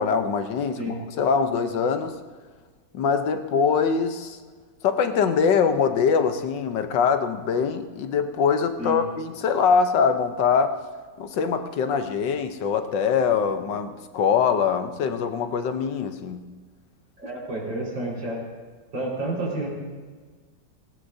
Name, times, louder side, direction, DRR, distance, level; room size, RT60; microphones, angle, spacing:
voice 1, 0.0-2.1 2.9-4.4 4.8-10.8 11.2-16.4, left 6 dB, 75° left, 7 dB, 1.6 m, -23 dB
voice 2, 17.2-18.4 18.9-19.7, right 1 dB, 85° right, -4 dB, 5.5 m, -30 dB
18.5 x 18.0 x 2.7 m, 1.4 s
omnidirectional pair, 2.0 m